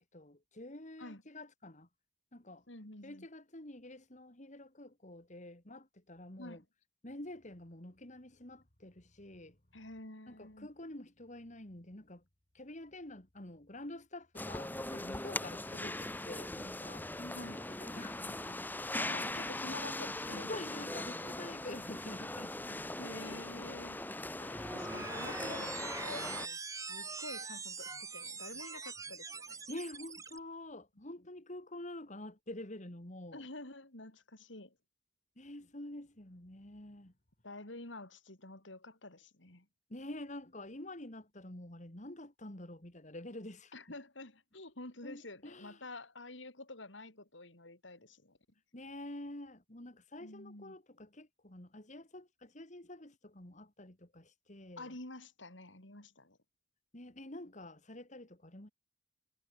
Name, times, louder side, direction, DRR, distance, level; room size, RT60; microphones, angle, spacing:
voice 1, 0.1-1.9 2.3-2.6 3.0-6.6 7.0-9.6 10.3-12.2 12.5-18.6 20.2-22.9 24.4-24.9 29.7-33.4 35.4-37.1 39.9-43.7 45.0-45.9 48.7-54.9 56.9-58.7, left 1 dB, 40° left, 3.0 m, -48 dB
voice 2, 2.7-3.3 6.4-6.6 9.7-10.7 17.3-17.6 19.0-20.5 21.2-21.3 23.0-24.0 24.7-29.6 33.3-34.7 37.4-39.7 43.7-48.4 50.2-50.8 54.8-56.4, left 2 dB, 80° left, 4.9 m, -49 dB
sound 1, 14.4-26.5, left 2 dB, 10° left, 1.4 m, -40 dB
sound 2, 24.5-30.4, right 4 dB, 15° right, 1.5 m, -43 dB
head